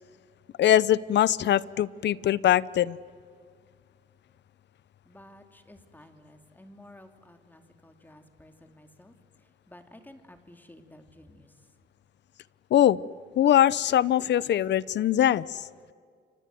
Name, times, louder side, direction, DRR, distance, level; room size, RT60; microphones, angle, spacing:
voice 1, 0.6-3.0 12.7-13.0 13.4-15.4, left 11 dB, 60° left, 21 dB, 0.7 m, -22 dB
voice 2, 5.0-9.1 9.7-11.5, left 1 dB, 10° left, 6 dB, 2.8 m, -52 dB
29.0 x 25.0 x 7.8 m, 2.1 s
cardioid pair, 90°, 20 cm